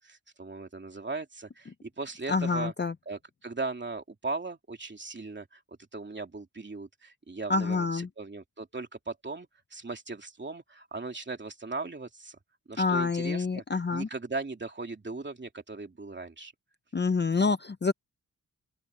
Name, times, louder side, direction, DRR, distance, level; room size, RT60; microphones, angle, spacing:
voice 1, 0.0-2.7 3.1-5.6 5.9-12.4 12.7-16.5, right 3 dB, 30° right, 2.8 m, -38 dB
voice 2, 2.3-2.9 7.5-8.1 12.8-14.1 16.9-17.9, left 4 dB, 30° left, 0.6 m, -27 dB
open air
wide cardioid pair, 105°, 35 cm